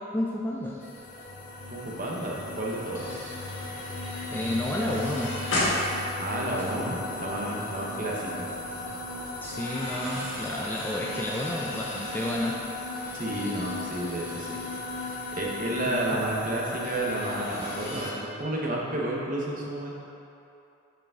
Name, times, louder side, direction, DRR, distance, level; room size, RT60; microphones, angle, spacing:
voice 1, 0.1-0.9 4.3-5.6 9.4-12.6 15.9-16.2, left 1 dB, 10° left, -3 dB, 0.3 m, -31 dB
sound 1, 0.8-18.1, left 2 dB, 45° left, 0.7 m, -37 dB
voice 2, 1.7-3.3 6.2-8.5 13.1-14.6 15.3-18.1 18.4-19.9, right 1 dB, 40° right, -3 dB, 0.9 m, -31 dB
sound 2, 2.5-7.1 7.5-7.7 9.4-15.4 16.8-18.1, left 1 dB, 75° left, 1.5 m, -36 dB
5.6 x 5.1 x 3.6 m, 2.8 s
head